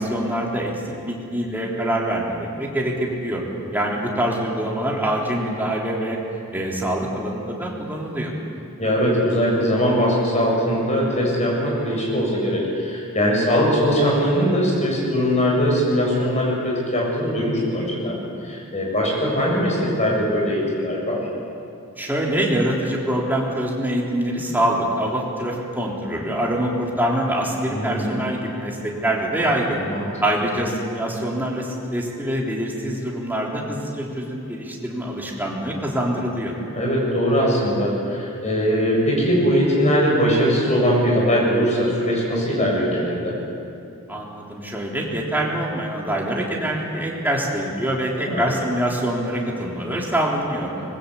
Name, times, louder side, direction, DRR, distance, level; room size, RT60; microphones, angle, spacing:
voice 1, 0.0-3.4 3.7-6.2 6.5-8.3 22.0-29.8 30.2-36.5 44.1-50.7, right 1 dB, 10° right, -2 dB, 3.6 m, -25 dB
voice 2, 8.8-18.2 18.4-21.2 27.7-28.2 29.8-30.1 36.7-43.4 48.3-48.5 50.8-50.9, equal, 30° left, -3 dB, 7.6 m, -21 dB
25.0 x 21.5 x 8.4 m, 2.6 s
head